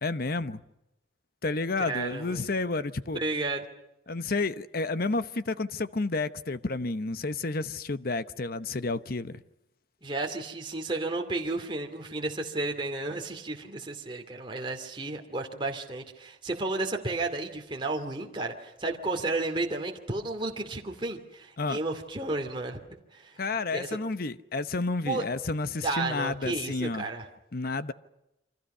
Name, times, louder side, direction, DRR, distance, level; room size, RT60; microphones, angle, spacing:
voice 1, 0.0-0.6 1.4-3.2 4.1-9.4 21.6-21.8 23.4-27.1 27.5-27.9, left 3 dB, 55° left, 0.9 m, -30 dB
voice 2, 1.8-2.5 3.1-3.6 10.0-22.8 23.1-23.4 23.7-24.0 25.1-25.2 25.8-27.3, right 2 dB, 25° right, 2.5 m, -32 dB
28.5 x 25.5 x 5.6 m
head